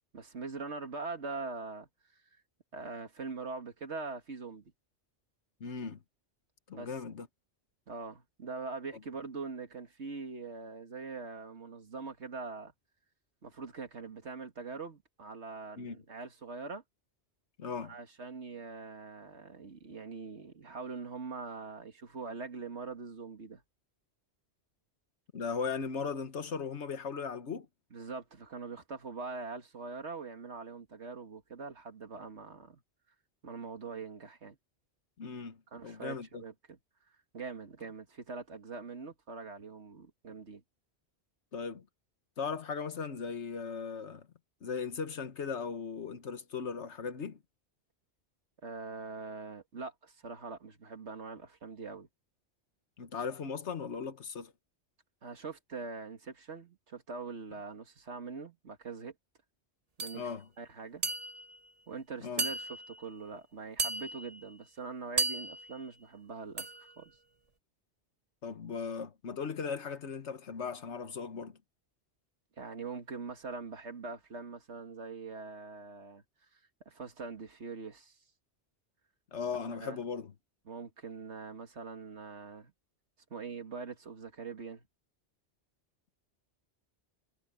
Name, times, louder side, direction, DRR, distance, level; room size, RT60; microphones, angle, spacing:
voice 1, 0.1-1.9 2.7-4.6 6.7-6.9 7.9-12.7 13.4-16.8 17.8-23.6 27.9-32.8 33.4-34.6 35.7-36.8 37.3-40.6 48.6-52.1 55.2-59.1 60.0-60.3 60.6-61.0 61.9-67.1 72.6-76.2 76.9-78.2 79.7-80.0 80.7-82.7 83.3-84.9, right 4 dB, 75° right, 2.2 m, -43 dB
voice 2, 5.6-6.0 6.7-7.3 15.8-16.0 17.6-17.9 25.3-27.7 35.2-36.4 41.5-41.9 42.4-44.3 44.6-47.4 53.0-54.5 60.1-60.5 62.2-62.5 68.4-71.6 79.3-80.3, left 5 dB, 80° left, 1.5 m, -38 dB
sound 1, 60.0-60.2 61.0-61.6 62.4-63.0 63.8-64.4 65.2-65.8 66.6-66.9, right 2 dB, 35° right, 1.2 m, -34 dB
omnidirectional pair, 1.2 m